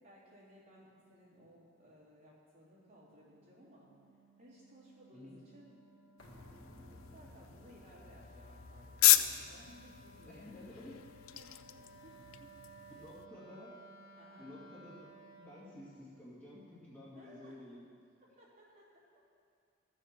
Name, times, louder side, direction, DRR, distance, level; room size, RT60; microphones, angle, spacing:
voice 1, 0.0-3.9 4.4-5.8 6.5-6.6 6.9-10.7 11.3-12.8 14.2-14.5 17.1-17.6 18.4-19.2, equal, 45° right, -9 dB, 3.7 m, -60 dB
Wind instrument woodwind instrument, 2.7-15.6, right 2 dB, 45° left, 2.5 m, -59 dB
sound 1, 6.2-13.3, left 13 dB, 85° left, 0.4 m, -34 dB
sound 2, 6.2-11.8 12.1-12.2, left 1 dB, 65° left, 1.6 m, -57 dB
voice 2, 10.3-11.0 12.9-13.7 14.4-15.1 15.4-17.9, left 1 dB, 10° left, -9 dB, 2.1 m, -51 dB
13.5 x 7.3 x 6.6 m, 2.3 s
head